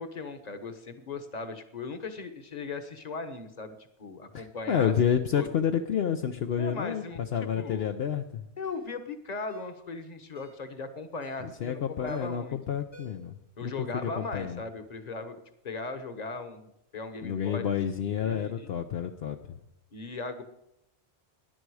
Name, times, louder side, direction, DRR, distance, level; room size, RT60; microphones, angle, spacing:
voice 1, 0.0-4.9 5.3-5.5 6.6-7.9 8.6-12.6 13.6-17.7 18.2-18.7 19.9-20.4, left 3 dB, 40° left, 9 dB, 1.2 m, -38 dB
voice 2, 4.3-8.4 11.4-14.6 17.2-19.4, left 8 dB, 65° left, 6 dB, 0.9 m, -29 dB
Ringtone, 6.9-7.1 7.8-8.0 8.6-8.9 9.5-9.8 10.3-10.6 11.2-11.6 12.1-12.5 12.9-13.4 13.7-13.8, left 1 dB, 85° left, 5.7 m, -53 dB
18.5 x 10.5 x 4.8 m, 0.84 s
omnidirectional pair, 1.1 m